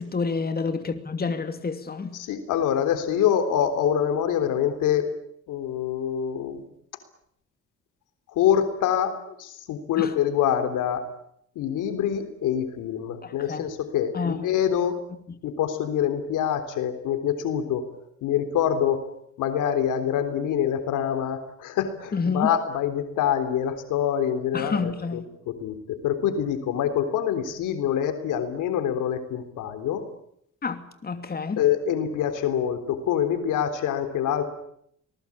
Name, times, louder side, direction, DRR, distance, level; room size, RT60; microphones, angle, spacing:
voice 1, 0.0-2.1 10.0-10.1 13.2-13.7 14.1-14.4 22.1-22.5 24.5-25.2 30.6-31.6, left 4 dB, 30° left, 2.7 m, -28 dB
voice 2, 2.1-5.1 5.5-6.7 8.3-11.1 11.6-15.0 15.4-19.1 19.4-30.0 31.6-34.5, left 9 dB, 90° left, 3.7 m, -25 dB
26.0 x 20.0 x 8.7 m
cardioid pair, 90°, 30 cm